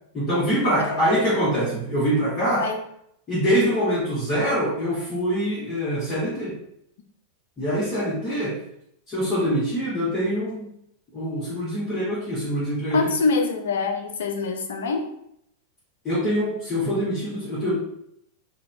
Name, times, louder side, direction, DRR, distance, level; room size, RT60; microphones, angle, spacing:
voice 1, 0.1-2.6 3.3-6.6 7.6-8.6 9.1-10.7 11.1-13.0 16.0-17.8, equal, 25° left, -11 dB, 1.5 m, -24 dB
voice 2, 12.9-15.1, left 4 dB, 60° left, 4 dB, 0.6 m, -25 dB
3.8 x 2.7 x 3.3 m, 0.74 s
figure-of-eight pair, 90°, 0 cm